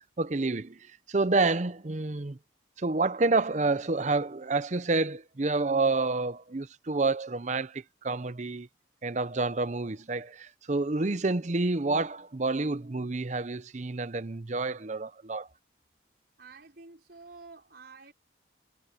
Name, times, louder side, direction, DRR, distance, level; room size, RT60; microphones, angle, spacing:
voice 1, 0.2-0.8 1.1-2.4 2.8-8.7 9.0-15.5, right 3 dB, 40° right, 0.6 m, -28 dB
voice 2, 16.4-18.1, right 4 dB, 55° right, 5.5 m, -50 dB
head